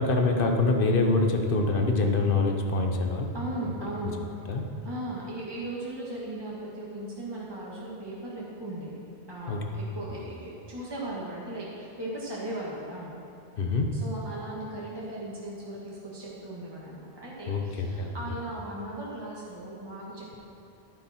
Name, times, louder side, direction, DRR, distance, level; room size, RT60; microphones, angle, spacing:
voice 1, 0.0-3.3 4.5-4.6 9.5-9.6 13.6-13.9 17.5-18.1, left 3 dB, 60° left, 3 dB, 1.1 m, -25 dB
voice 2, 3.3-4.2 4.8-9.0 9.3-13.1 13.9-20.4, right 1 dB, 25° right, -6 dB, 1.7 m, -37 dB
11.0 x 9.1 x 4.3 m, 2.8 s
omnidirectional pair, 1.1 m